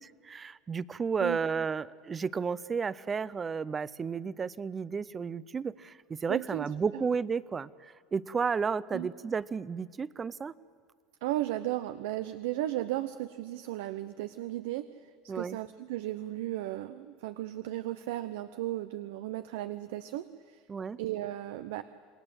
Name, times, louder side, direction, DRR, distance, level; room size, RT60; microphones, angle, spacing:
voice 1, 0.3-7.7 8.1-10.5 15.3-15.6 20.7-21.0, right 5 dB, 20° right, 19 dB, 0.5 m, -32 dB
voice 2, 6.3-7.0 8.9-9.1 11.2-20.6 21.0-21.8, right 14 dB, 80° right, 12 dB, 0.8 m, -35 dB
27.5 x 21.0 x 8.0 m, 2.1 s
cardioid pair, 150°, 0 cm